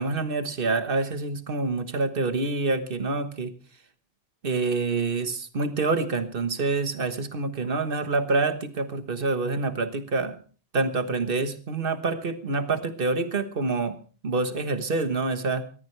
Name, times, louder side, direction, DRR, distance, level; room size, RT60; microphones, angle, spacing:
voice 1, 0.0-3.5 4.4-10.4 10.7-14.0 14.2-15.6, right 3 dB, 60° right, 10 dB, 1.5 m, -27 dB
20.5 x 14.5 x 3.3 m, 0.37 s
omnidirectional pair, 1.1 m